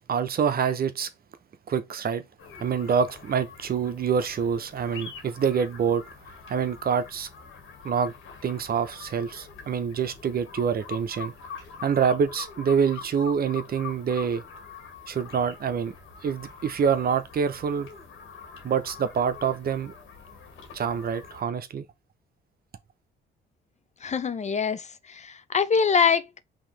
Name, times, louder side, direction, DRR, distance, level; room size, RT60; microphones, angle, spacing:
voice 1, 0.1-1.1 1.7-2.2 2.6-6.0 6.5-7.3 7.8-8.1 8.4-11.3 11.8-14.4 15.1-15.9 16.2-17.9 18.6-19.9 20.7-21.8, right 7 dB, 50° right, 0.8 m, -26 dB
sound 1, 2.4-21.4, left 6 dB, 80° left, 1.9 m, -44 dB
voice 2, 24.0-26.3, left 6 dB, 35° left, 0.6 m, -24 dB
5.5 x 2.9 x 3.2 m
cardioid pair, 90°, 20 cm